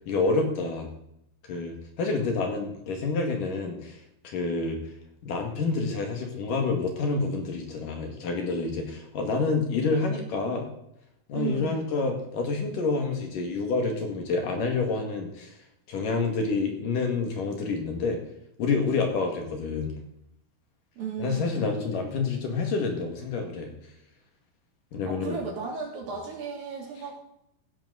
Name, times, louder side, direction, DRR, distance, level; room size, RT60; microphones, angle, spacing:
voice 1, 0.1-0.9 1.5-4.0 4.2-4.8 5.2-10.7 11.3-15.5 15.9-18.2 18.6-19.9 21.2-23.7 24.9-25.4, left 4 dB, 60° left, 3 dB, 3.4 m, -28 dB
voice 2, 11.3-11.8 21.0-21.8 25.0-27.2, right 5 dB, 65° right, -1 dB, 4.7 m, -34 dB
16.0 x 11.0 x 4.0 m, 0.78 s
omnidirectional pair, 4.5 m